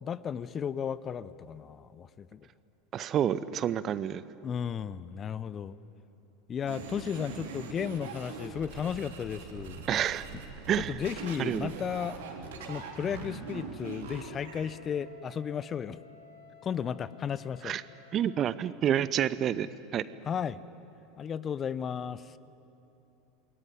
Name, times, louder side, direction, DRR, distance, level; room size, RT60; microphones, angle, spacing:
voice 1, 0.0-2.4 4.4-5.8 6.5-9.8 10.8-12.2 12.7-16.0 16.6-17.8 20.2-20.6 21.2-22.4, left 8 dB, 30° left, 18 dB, 0.8 m, -34 dB
voice 2, 2.9-4.2 9.9-10.3 10.7-11.0 11.4-11.7 17.6-17.8 18.1-20.0, right 10 dB, 35° right, 17 dB, 0.8 m, -29 dB
sound 1, 6.7-14.7, right 5 dB, 65° right, 3.4 m, -42 dB
Wind instrument woodwind instrument, 14.0-18.6, left 3 dB, 90° left, 7.8 m, -55 dB
28.0 x 21.5 x 9.5 m, 3.0 s
figure-of-eight pair, 80°, 0 cm